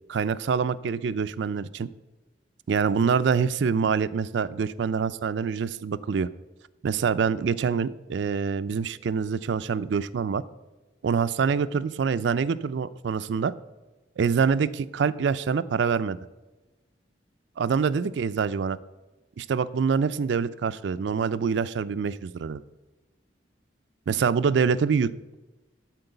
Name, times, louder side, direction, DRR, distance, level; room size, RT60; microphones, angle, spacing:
voice 1, 0.1-1.9 2.7-6.3 6.8-10.4 11.0-13.5 14.2-16.2 17.6-18.8 19.4-22.6 24.1-25.3, right 6 dB, 75° right, 14 dB, 0.4 m, -25 dB
12.0 x 4.6 x 7.9 m, 1.1 s
head